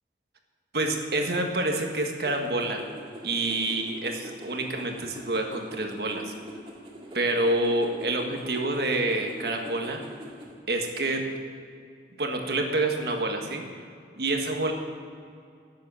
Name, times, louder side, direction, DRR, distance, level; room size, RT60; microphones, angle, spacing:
voice 1, 0.7-2.9 3.2-6.3 7.1-10.0 10.7-11.3 12.2-13.6 14.1-14.7, right 2 dB, 60° right, 3 dB, 1.5 m, -27 dB
sound 1, 2.2-10.5, right 1 dB, 30° right, 1.9 m, -44 dB
12.0 x 7.7 x 8.7 m, 2.3 s
head